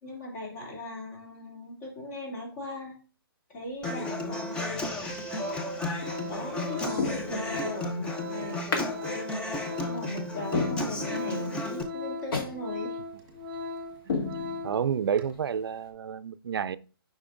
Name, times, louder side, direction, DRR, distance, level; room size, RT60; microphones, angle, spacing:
voice 1, 0.0-3.0 3.5-5.5 6.3-9.0 9.8-13.0, left 1 dB, 35° left, 2.5 m, -38 dB
Human voice / Acoustic guitar, 3.8-11.8, left 2 dB, 10° left, 0.5 m, -34 dB
Organ, 5.2-14.8 15.2-15.3, left 3 dB, 25° right, 1.3 m, -39 dB
sound 1, 6.0-6.3 6.9-7.8 8.7-8.9 9.3-9.4 9.9-10.0 10.5-11.4 11.7-11.8 12.3-12.6 12.9-13.0 13.5-13.7 14.1-15.0 15.3-15.4, left 4 dB, 65° left, 2.0 m, -32 dB
voice 2, 14.6-16.8, right 8 dB, 70° right, 0.4 m, -30 dB
8.3 x 5.2 x 2.5 m
hypercardioid pair, 150°, 13 cm